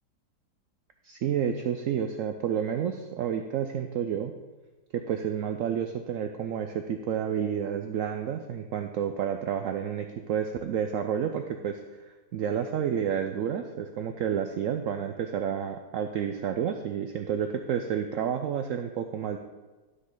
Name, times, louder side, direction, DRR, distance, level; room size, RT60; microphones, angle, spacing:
voice 1, 1.0-4.3 4.9-11.8 12.1-19.4, right 8 dB, 75° right, 6 dB, 0.7 m, -30 dB
12.0 x 6.3 x 3.8 m, 1.2 s
omnidirectional pair, 1.9 m